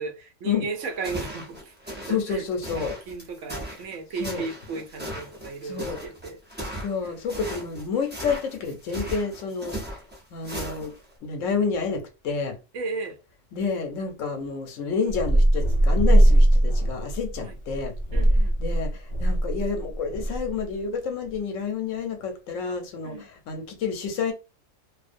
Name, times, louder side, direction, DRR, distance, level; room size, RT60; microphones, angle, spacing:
voice 1, 0.0-6.4 6.6-6.7 7.0-7.1 12.7-13.2 17.4-17.5 18.1-18.6 23.0-23.3, right 4 dB, 75° right, 1.0 m, -35 dB
sound 1, 0.8-11.1, right 1 dB, 10° right, 0.5 m, -37 dB
voice 2, 2.0-2.9 4.2-4.5 5.7-6.0 6.8-9.8 10.3-10.9 11.2-12.6 13.5-17.9 18.6-24.3, left 5 dB, 80° left, 1.0 m, -29 dB
sound 2, 15.1-20.6, right 1 dB, 45° left, 0.4 m, -20 dB
2.4 x 2.1 x 2.5 m
omnidirectional pair, 1.3 m